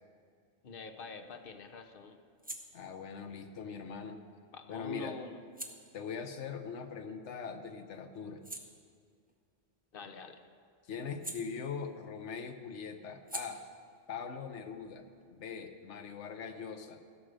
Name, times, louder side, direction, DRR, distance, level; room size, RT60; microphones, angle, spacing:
voice 1, 0.6-2.2 4.5-5.3 9.9-10.4, left 4 dB, 55° left, 6 dB, 0.9 m, -45 dB
sound 1, 0.7-7.5 7.9-12.2 12.4-15.8, right 1 dB, 10° right, 0.7 m, -51 dB
voice 2, 2.7-4.2 4.7-5.2 5.9-8.4 10.9-13.6 14.1-17.0, left 6 dB, 75° left, 7 dB, 1.2 m, -41 dB
15.5 x 6.3 x 6.3 m, 2.1 s
omnidirectional pair, 1.2 m